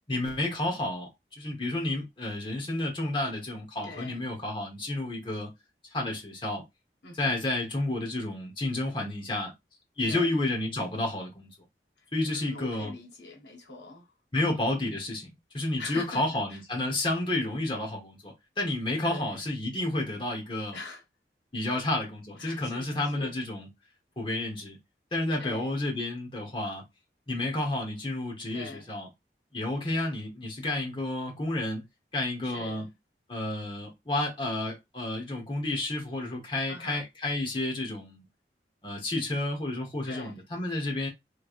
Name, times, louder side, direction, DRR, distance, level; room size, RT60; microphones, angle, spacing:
voice 1, 0.1-1.1 1.4-5.5 5.9-6.6 7.1-9.5 10.0-11.5 12.1-12.9 14.3-15.3 15.5-20.8 21.5-23.7 24.2-24.8 25.1-26.8 27.3-29.1 29.5-31.8 32.1-32.9 33.3-38.2 38.8-41.1, left 2 dB, 30° left, 1.2 m, -31 dB
voice 2, 3.8-4.2 7.0-7.3 10.1-10.3 12.3-14.1 14.3-14.5 15.8-16.2 16.5-16.6 19.0-19.4 20.7-21.0 21.7-21.8 22.4-23.3 25.4-25.8 28.5-28.9 32.4-32.9 36.7-37.0 40.1-40.4, left 3 dB, 85° left, 1.1 m, -42 dB
3.3 x 3.1 x 2.5 m
head